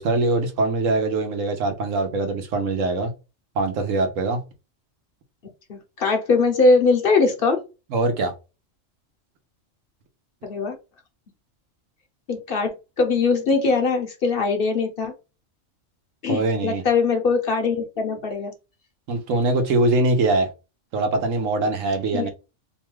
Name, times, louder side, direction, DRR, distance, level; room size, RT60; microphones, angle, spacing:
voice 1, 0.0-3.1 3.6-4.4 7.9-8.3 16.3-16.8 19.1-20.5 20.9-22.3, right 2 dB, 80° right, 1.2 m, -22 dB
voice 2, 5.7-7.6 10.4-10.8 12.3-15.1 16.2-18.5 22.1-22.3, left 4 dB, 55° left, 0.8 m, -21 dB
2.9 x 2.2 x 3.1 m
omnidirectional pair, 1.3 m